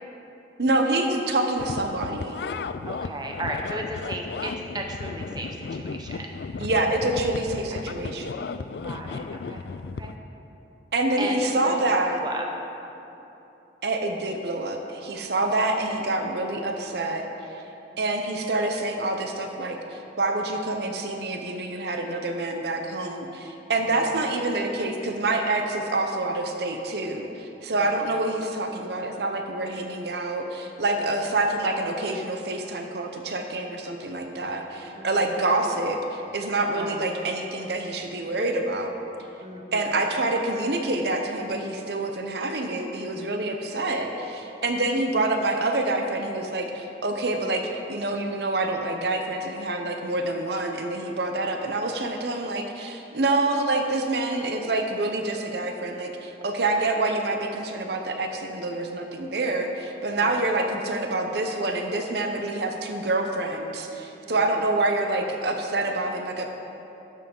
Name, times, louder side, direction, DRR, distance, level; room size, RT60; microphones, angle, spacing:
voice 1, 0.6-2.4 6.6-8.3 10.9-12.2 13.8-17.3 18.0-39.0 39.7-47.6 47.9-66.5, right 2 dB, 65° right, 4 dB, 0.8 m, -27 dB
sound 1, 1.6-10.2, left 4 dB, 65° left, 0.4 m, -35 dB
voice 2, 2.9-6.3 8.8-9.6 10.0-10.1 11.2-11.7 12.1-12.5 17.9-18.0 23.8-24.3 34.2-34.7 35.0-35.1 36.7-37.1 39.4-40.0 60.2-60.4 64.3-64.4, right 1 dB, 25° right, 1 dB, 0.9 m, -35 dB
12.0 x 7.4 x 5.4 m, 3.0 s
head